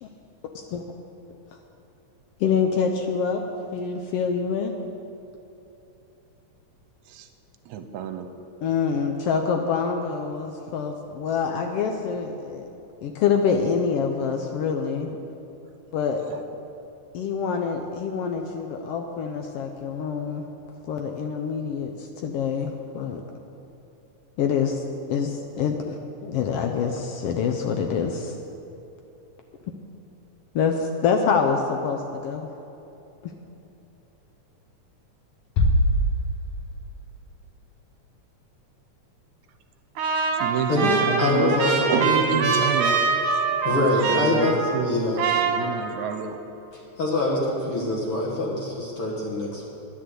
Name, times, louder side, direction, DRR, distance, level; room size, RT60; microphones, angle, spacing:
voice 1, 2.4-3.4 3.7-4.7 8.6-12.7 13.0-15.1 15.9-16.3 17.1-20.4 20.9-23.2 24.4-24.8 25.1-28.3 30.5-32.5 33.2-33.3, left 6 dB, 85° left, 4 dB, 1.3 m, -26 dB
voice 2, 7.7-8.3 16.3-16.4 40.3-41.6 41.9-43.0 43.3-43.4 43.9-45.0 45.3-46.4, right 8 dB, 75° right, 8 dB, 2.0 m, -29 dB
Bass drum, 35.6-37.0, equal, 70° left, 2.0 m, -22 dB
Trumpet, 40.0-44.9 45.2-46.2, right 5 dB, 60° right, 1.9 m, -24 dB
voice 3, 40.7-42.5 43.6-45.3 46.7-49.7, left 2 dB, 50° left, -3 dB, 2.1 m, -25 dB
10.5 x 10.5 x 7.8 m, 3.0 s
omnidirectional pair, 3.6 m